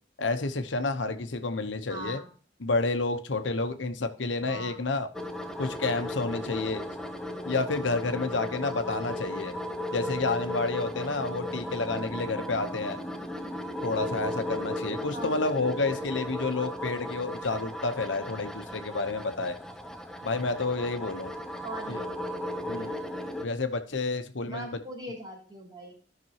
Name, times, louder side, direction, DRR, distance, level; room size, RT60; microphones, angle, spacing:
voice 1, 0.2-2.2 2.6-5.1 5.6-6.8 7.4-9.6 9.9-13.0 13.8-19.6 20.2-21.3 21.9-22.0 22.7-23.0 23.4-24.8, left 3 dB, 85° left, 8 dB, 1.0 m, -30 dB
voice 2, 1.9-2.3 4.4-4.8 15.1-15.4 21.6-22.4 24.4-25.9, right 2 dB, 25° right, -1 dB, 3.2 m, -41 dB
sound 1, 5.1-23.4, left 1 dB, 5° left, 0.6 m, -36 dB
14.0 x 6.0 x 2.9 m, 0.41 s
head